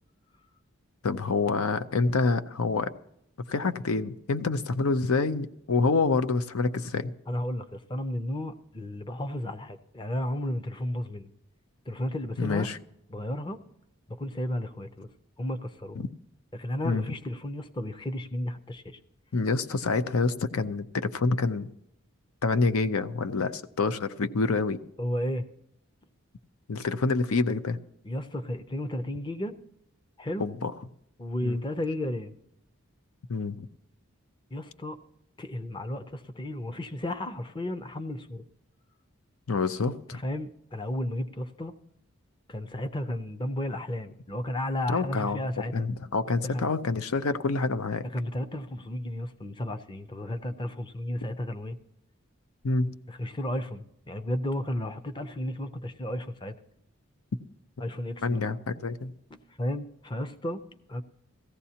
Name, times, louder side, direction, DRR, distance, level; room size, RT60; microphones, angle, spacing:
voice 1, 1.0-2.9 3.5-7.1 12.4-12.8 16.0-16.1 16.8-17.0 19.3-21.7 22.4-24.8 26.7-27.8 30.4-30.7 31.4-31.6 33.3-33.7 39.5-40.2 44.9-45.4 45.7-48.0 52.6-52.9 58.2-59.1, left 3 dB, 85° left, 11 dB, 0.6 m, -27 dB
voice 2, 7.3-11.3 11.9-12.7 13.1-13.6 14.2-15.1 15.4-16.0 16.5-19.0 25.0-25.5 28.0-29.6 30.2-30.5 31.2-32.3 34.5-35.0 35.4-38.4 40.1-41.7 42.5-45.9 46.4-46.7 48.1-51.8 53.1-56.5 57.8-58.4 59.6-60.6 60.9-61.0, left 1 dB, 20° left, 10 dB, 0.6 m, -33 dB
18.0 x 14.5 x 2.8 m, 0.78 s
head